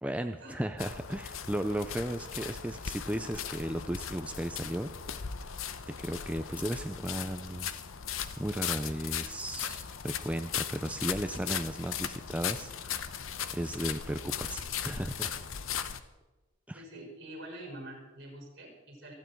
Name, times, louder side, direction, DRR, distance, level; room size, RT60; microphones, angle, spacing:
voice 1, 0.0-4.9 6.0-7.7 8.4-13.2 13.5-15.3 16.7-16.8, right 1 dB, 5° right, 7 dB, 0.5 m, -35 dB
sound 1, 0.8-16.0, left 8 dB, 85° left, 0.9 m, -38 dB
voice 2, 16.7-19.1, right 1 dB, 55° right, -1 dB, 6.0 m, -46 dB
27.0 x 9.3 x 4.6 m, 1.1 s
head